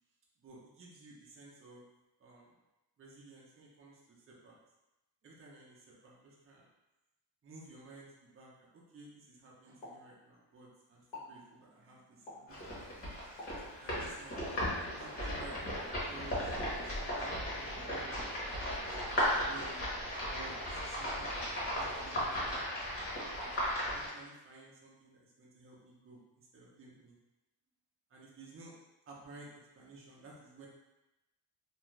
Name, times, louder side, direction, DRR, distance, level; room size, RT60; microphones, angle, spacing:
voice 1, 0.4-1.8 2.2-2.5 3.0-4.6 5.2-6.7 7.4-13.1 13.4-14.7 15.0-18.1 18.7-19.9 20.3-21.5 21.8-22.6 23.3-27.2 28.1-28.7 29.1-30.7, right 2 dB, 30° right, -4 dB, 0.6 m, -54 dB
Explosion, 9.8-10.7 11.0-11.4 12.3-12.6 13.4-13.8 14.6-15.3 15.8-16.0, left 2 dB, 85° left, 1.1 m, -50 dB
sound 1, 12.5-24.1, equal, 30° left, 1.0 m, -36 dB
2.5 x 2.2 x 3.0 m, 0.98 s
cardioid pair, 125°, 43 cm